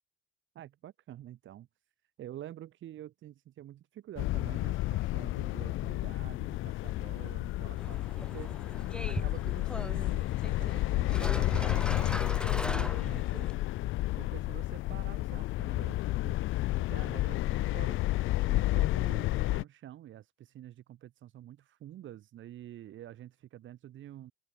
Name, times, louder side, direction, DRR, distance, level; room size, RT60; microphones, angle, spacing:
voice 1, 0.5-1.7 2.2-13.5 14.2-18.0 18.3-24.3, right 12 dB, 75° right, 2.8 m, -48 dB
sound 1, 4.2-19.6, left 17 dB, 85° left, 0.5 m, -31 dB
sound 2, 7.8-13.6, left 1 dB, 5° left, 1.8 m, -40 dB
open air
cardioid pair, 90°, 20 cm